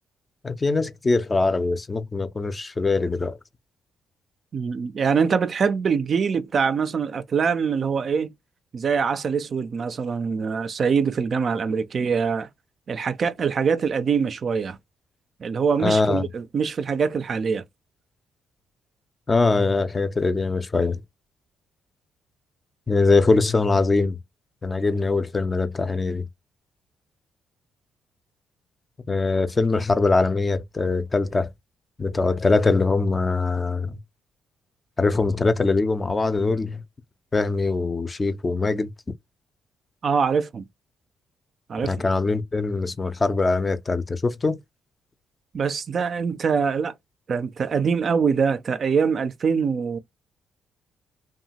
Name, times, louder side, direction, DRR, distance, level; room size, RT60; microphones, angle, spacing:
voice 1, 0.4-3.4 15.8-16.2 19.3-21.0 22.9-24.2 24.6-26.2 29.1-31.5 32.0-34.0 35.0-36.8 37.3-38.9 41.8-44.6, left 3 dB, 25° left, 0.4 m, -22 dB
voice 2, 4.5-8.3 8.7-12.5 12.9-14.8 15.4-17.6 40.0-40.6 41.7-41.9 45.5-46.9 47.3-50.0, right 6 dB, 50° right, 0.4 m, -24 dB
2.7 x 2.2 x 2.8 m
cardioid pair, 90°, 0 cm